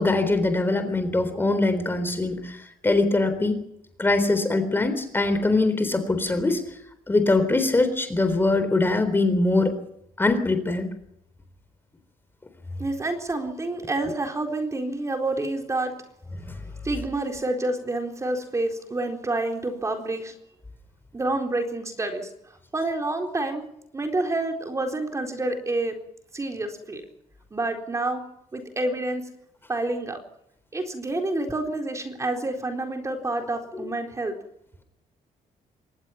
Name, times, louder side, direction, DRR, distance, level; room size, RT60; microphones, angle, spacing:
voice 1, 0.0-2.6 2.8-3.7 4.0-6.6 7.1-9.7 10.2-10.9 16.5-16.6, left 2 dB, 15° left, 9 dB, 3.9 m, -22 dB
voice 2, 12.8-15.9 16.8-20.3 21.1-22.3 22.7-23.6 23.9-26.0 26.3-27.0 27.5-28.2 28.5-29.2 29.7-30.2 30.7-34.3, right 2 dB, 20° right, 3 dB, 4.1 m, -28 dB
25.0 x 19.5 x 5.9 m, 0.77 s
cardioid pair, 120°, 14 cm